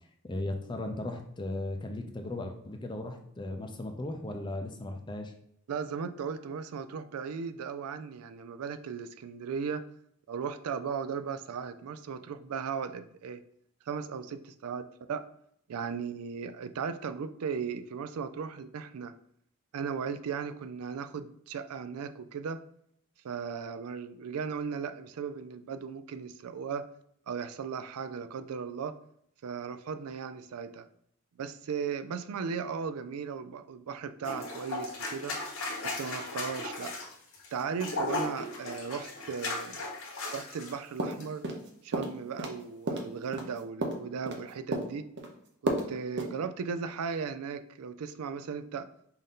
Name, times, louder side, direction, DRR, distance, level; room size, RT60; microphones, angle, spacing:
voice 1, 0.2-5.3, left 2 dB, 20° left, 4 dB, 0.5 m, -36 dB
voice 2, 5.7-9.8 10.3-13.4 13.9-14.8 15.1-15.3 15.7-19.1 19.7-22.6 23.2-26.9 27.3-28.9 29.4-30.9 31.4-35.4 35.8-36.9 37.5-39.8 40.3-41.4 41.8-45.1 45.6-48.9, right 6 dB, 85° right, 11 dB, 0.4 m, -36 dB
sound 1, 34.2-40.7 41.1-41.2, left 2 dB, 70° left, 1.2 m, -36 dB
sound 2, 41.0-41.7 41.9-42.6 42.9-44.4 44.7-45.3 45.7-45.9 46.2-46.3, right 2 dB, 50° right, 0.7 m, -32 dB
5.5 x 2.6 x 3.6 m, 0.70 s
head